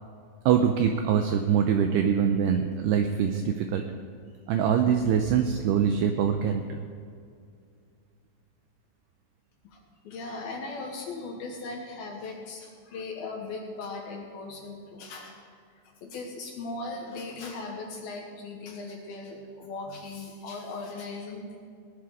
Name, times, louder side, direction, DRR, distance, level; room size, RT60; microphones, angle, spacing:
voice 1, 0.5-3.8 4.5-6.6, right 8 dB, 85° right, 6 dB, 2.3 m, -24 dB
voice 2, 10.0-15.3 16.0-21.6, left 3 dB, 70° left, 1 dB, 2.6 m, -38 dB
18.5 x 11.0 x 4.8 m, 2.3 s
omnidirectional pair, 5.5 m